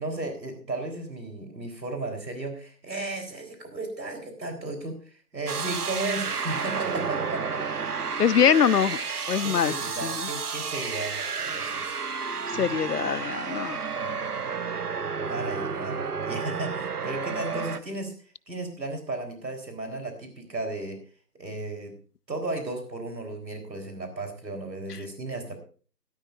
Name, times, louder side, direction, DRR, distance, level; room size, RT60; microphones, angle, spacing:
voice 1, 0.0-7.6 9.4-12.0 12.5-12.8 13.2-13.3 14.0-14.2 15.2-18.1 18.5-21.0 21.4-21.9 22.3-25.6, right 2 dB, 90° right, 4 dB, 4.1 m, -35 dB
sound 1, 5.5-17.8, right 5 dB, 65° right, 1.2 m, -31 dB
voice 2, 8.2-9.0 9.3-10.3 12.5-13.8, left 8 dB, 70° left, 20 dB, 0.7 m, -23 dB
16.5 x 13.0 x 2.6 m, 0.39 s
figure-of-eight pair, 160°, 49 cm